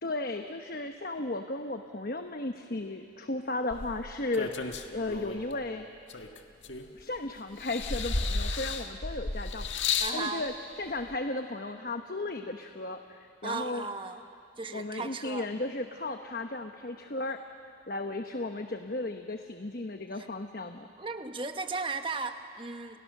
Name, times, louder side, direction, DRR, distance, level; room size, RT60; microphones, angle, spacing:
voice 1, 0.0-5.9 6.9-13.8 14.7-17.4 17.9-20.9, left 2 dB, 50° left, 6 dB, 1.1 m, -35 dB
sound 1, 3.7-5.5 6.1-7.2 7.6-10.2 11.1-11.2, left 4 dB, 80° left, 1.6 m, -33 dB
voice 2, 10.0-10.4 13.4-14.2 14.6-15.5 20.2-20.3 21.0-23.0, right 4 dB, 25° right, 7 dB, 1.2 m, -36 dB
29.5 x 29.5 x 6.7 m, 2.4 s
head